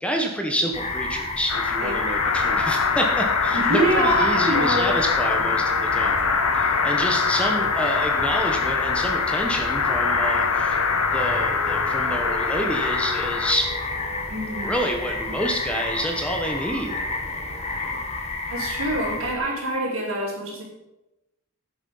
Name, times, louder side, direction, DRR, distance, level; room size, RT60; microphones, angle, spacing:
voice 1, 0.0-6.3 6.5-10.8 11.1-13.7 14.6-17.1, equal, 5° left, 3 dB, 1.0 m, -28 dB
sound 1, 0.7-19.4, left 3 dB, 30° left, 1.3 m, -30 dB
sound 2, 1.5-13.5, left 5 dB, 80° left, 0.8 m, -24 dB
sound 3, 2.1-18.1, right 1 dB, 35° right, 1.2 m, -42 dB
voice 2, 3.5-4.9 10.6-10.8 14.3-14.7 18.5-20.6, right 1 dB, 70° right, -4 dB, 4.3 m, -25 dB
10.5 x 8.1 x 5.5 m, 0.96 s
head